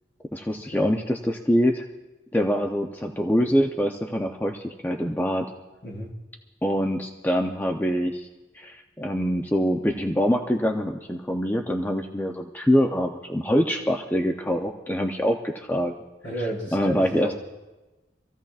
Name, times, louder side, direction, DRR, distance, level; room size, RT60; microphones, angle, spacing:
voice 1, 0.3-1.9 2.3-5.5 6.6-8.3 8.5-16.0 16.7-17.3, equal, 10° left, 2 dB, 0.6 m, -24 dB
voice 2, 5.8-6.1 16.2-17.3, equal, 60° left, -5 dB, 5.0 m, -31 dB
26.0 x 15.0 x 2.4 m, 1.1 s
head